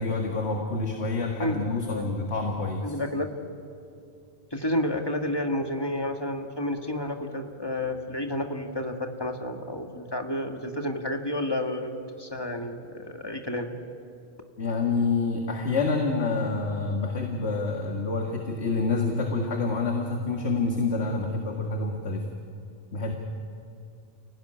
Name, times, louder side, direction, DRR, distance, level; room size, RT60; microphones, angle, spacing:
voice 1, 0.0-3.0 14.6-22.3 22.9-23.1, left 3 dB, 80° left, 2 dB, 2.2 m, -27 dB
voice 2, 1.4-2.2 2.8-3.3 4.5-13.7, left 1 dB, 20° left, 3 dB, 1.9 m, -30 dB
29.5 x 18.0 x 10.0 m, 2.5 s
omnidirectional pair, 1.1 m